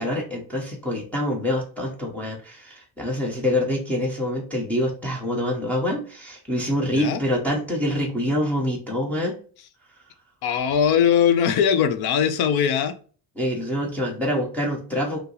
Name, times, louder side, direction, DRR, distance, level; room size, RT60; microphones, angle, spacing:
voice 1, 0.0-9.4 13.4-15.2, left 1 dB, 5° left, 0.8 m, -26 dB
voice 2, 10.4-13.0, left 8 dB, 60° left, 0.6 m, -20 dB
5.5 x 2.0 x 3.8 m
cardioid pair, 170°, 43 cm